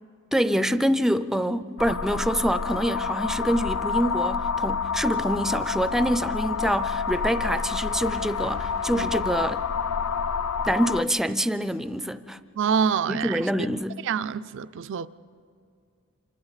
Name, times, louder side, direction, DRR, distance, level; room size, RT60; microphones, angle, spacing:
voice 1, 0.3-9.6 10.6-12.4 13.1-14.0, equal, ahead, 0.4 m, -26 dB
sound 1, 1.8-11.0, left 5 dB, 80° left, 0.5 m, -28 dB
voice 2, 12.6-13.5 14.1-15.1, right 7 dB, 60° right, 0.4 m, -26 dB
28.0 x 26.0 x 4.1 m
head